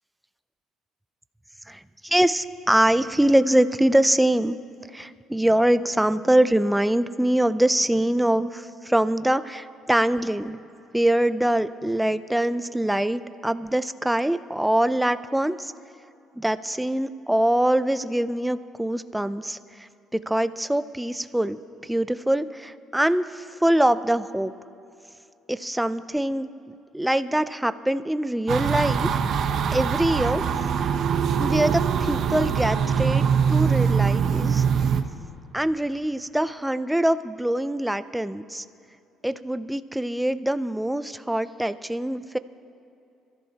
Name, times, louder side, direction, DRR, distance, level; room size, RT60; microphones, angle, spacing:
voice 1, 1.7-4.6 4.9-9.6 9.9-10.6 10.9-15.7 16.4-24.5 25.5-26.5 26.9-29.1 29.3-29.5 29.7-30.4 31.4-34.6 35.5-38.6 39.2-42.4, right 1 dB, 5° right, 13 dB, 0.4 m, -23 dB
sound 1, 28.5-35.0, right 7 dB, 45° right, 0.8 m, -23 dB
27.0 x 14.0 x 2.8 m, 2.7 s
cardioid pair, 170°, 0 cm